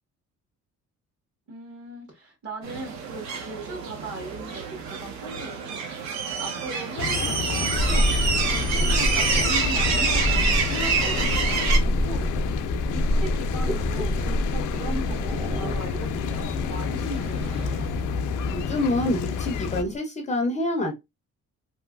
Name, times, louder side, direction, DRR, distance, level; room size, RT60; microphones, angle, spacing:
voice 1, 1.5-5.8 6.1-12.6 12.9-17.9, right 1 dB, 50° right, 1.5 m, -38 dB
sound 1, 2.6-11.8, right 5 dB, 65° right, 0.7 m, -27 dB
sound 2, 7.0-19.8, left 6 dB, 90° left, 0.5 m, -30 dB
sound 3, 7.8-20.0, equal, 20° right, 0.8 m, -28 dB
voice 2, 18.5-20.9, left 1 dB, 25° left, 0.5 m, -26 dB
3.0 x 2.8 x 2.2 m
cardioid pair, 180°, 30 cm